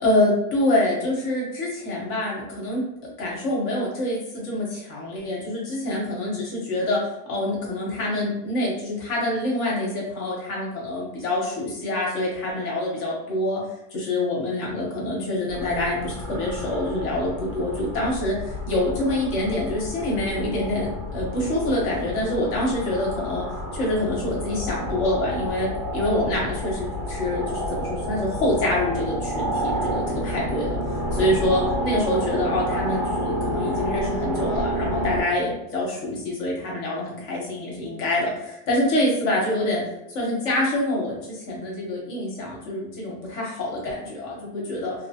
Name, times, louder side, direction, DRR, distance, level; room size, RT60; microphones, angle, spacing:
voice 1, 0.0-7.0 7.3-13.6 13.9-23.5 23.7-30.8 31.1-39.8 40.1-44.9, left 1 dB, 60° left, -3 dB, 1.1 m, -26 dB
sound 1, 15.5-35.2, equal, 60° right, 1.5 m, -29 dB
3.2 x 2.0 x 2.7 m, 0.85 s
omnidirectional pair, 1.5 m